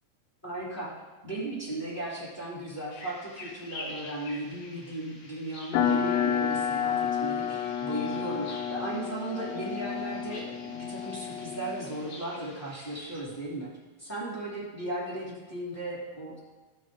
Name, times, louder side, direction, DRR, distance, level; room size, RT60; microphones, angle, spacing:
voice 1, 0.4-0.9 1.2-13.7 14.0-16.4, right 1 dB, 5° left, -7 dB, 2.3 m, -36 dB
sound 1, 2.9-13.2, left 2 dB, 65° left, 3.2 m, -48 dB
sound 2, 5.7-11.9, left 8 dB, 85° left, 2.4 m, -30 dB
15.0 x 5.4 x 3.8 m, 1.3 s
omnidirectional pair, 4.0 m